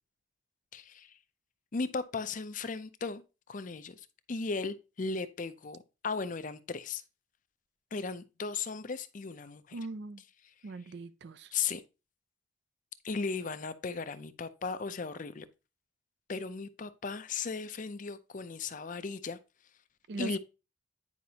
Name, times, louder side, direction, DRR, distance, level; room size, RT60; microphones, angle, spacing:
voice 1, 0.7-1.1 1.7-3.2 3.5-3.9 4.3-5.8 6.0-7.0 7.9-9.6 11.5-11.8 13.0-15.5 16.3-19.4 20.2-20.4, left 4 dB, 40° left, 0.5 m, -36 dB
voice 2, 9.7-10.2 10.6-11.5 20.1-20.4, right 3 dB, 60° right, 0.5 m, -40 dB
9.5 x 5.1 x 2.8 m
head